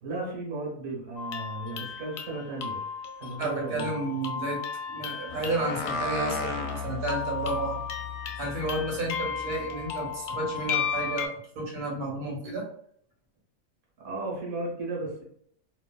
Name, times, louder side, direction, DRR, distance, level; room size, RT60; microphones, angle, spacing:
voice 1, 0.0-2.8 3.2-3.9 14.0-15.2, right 2 dB, 70° right, -4 dB, 1.5 m, -35 dB
sound 1, 1.2-11.3, left 6 dB, 70° left, 0.6 m, -35 dB
voice 2, 3.4-4.6 4.9-7.8 8.4-12.7, right 2 dB, 90° right, -2 dB, 1.4 m, -31 dB
sound 2, 5.3-10.0, left 6 dB, 90° left, 1.1 m, -36 dB
3.1 x 2.3 x 2.2 m, 0.66 s
omnidirectional pair, 1.6 m